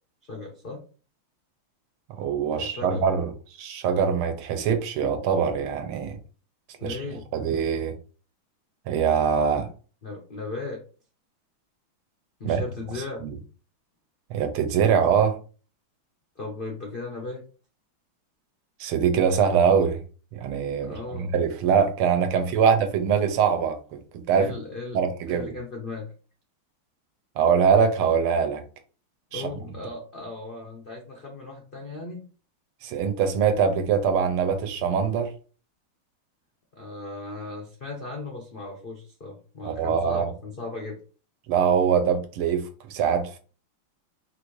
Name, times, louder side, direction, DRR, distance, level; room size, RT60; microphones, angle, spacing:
voice 1, 0.3-0.8 2.5-3.1 6.8-7.3 10.0-10.8 12.4-13.3 16.4-17.4 20.8-21.3 24.4-26.1 29.3-32.2 36.7-41.0, left 3 dB, 85° left, 0.4 m, -37 dB
voice 2, 2.2-3.3 3.6-6.2 6.8-8.0 8.9-9.7 12.4-12.6 13.2-13.4 14.3-15.4 18.8-20.0 20.3-24.5 24.9-25.5 27.4-28.6 29.3-29.5 32.8-35.3 39.6-40.3 41.5-43.4, right 7 dB, 90° right, 1.7 m, -23 dB
4.2 x 2.6 x 4.5 m
omnidirectional pair, 2.3 m